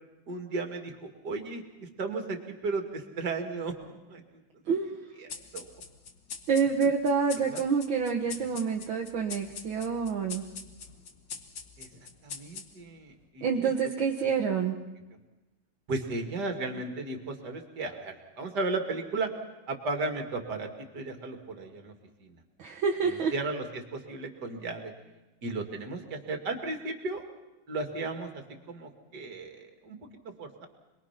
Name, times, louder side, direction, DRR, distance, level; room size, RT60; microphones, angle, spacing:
voice 1, 0.3-4.2 5.2-5.7 6.8-6.9 7.5-7.6 8.4-8.6 11.8-11.9 12.2-13.7 15.9-19.3 19.7-20.7 20.9-21.9 22.2-22.4 23.0-24.9 25.4-27.2 27.7-28.3 28.7-30.7, right 3 dB, 50° right, 5 dB, 2.8 m, -35 dB
voice 2, 4.7-5.0 6.5-10.4 13.4-14.8 22.6-23.3, right 5 dB, 65° right, 1 dB, 2.1 m, -27 dB
sound 1, 5.3-13.0, left 5 dB, 60° left, 2.1 m, -44 dB
27.0 x 21.5 x 5.8 m, 1.1 s
omnidirectional pair, 2.4 m